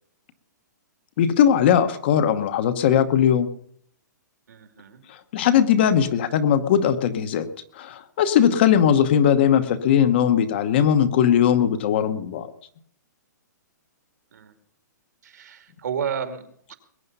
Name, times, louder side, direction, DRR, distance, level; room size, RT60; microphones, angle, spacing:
voice 1, 1.2-3.5 5.3-7.5 7.8-12.5, left 9 dB, 35° left, 10 dB, 1.0 m, -19 dB
voice 2, 4.5-5.0 14.3-14.5 15.2-16.7, right 7 dB, 65° right, 7 dB, 2.5 m, -32 dB
21.5 x 9.5 x 5.5 m, 0.63 s
hypercardioid pair, 175°, 10 cm